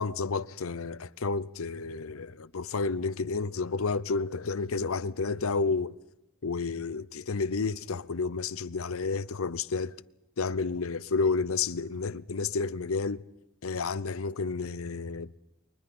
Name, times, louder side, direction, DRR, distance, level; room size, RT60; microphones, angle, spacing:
voice 1, 0.0-5.9 6.4-9.9 10.4-13.2 13.6-15.4, left 4 dB, 80° left, 0.7 m, -31 dB
30.0 x 24.5 x 4.3 m
head